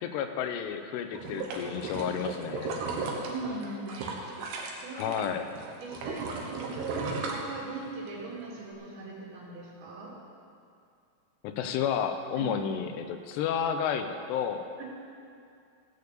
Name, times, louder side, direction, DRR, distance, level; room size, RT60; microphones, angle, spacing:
voice 1, 0.0-2.7 5.0-5.5 11.4-14.7, left 8 dB, 90° left, 7 dB, 3.0 m, -31 dB
sound 1, 1.1-5.3 5.6-8.1 8.5-8.6, right 4 dB, 85° right, 3.5 m, -35 dB
voice 2, 2.8-4.2 4.8-5.2 5.8-10.1 12.4-12.5 14.8-14.9, right 3 dB, 65° right, -4 dB, 4.1 m, -39 dB
15.5 x 6.8 x 8.0 m, 2.4 s
omnidirectional pair, 4.8 m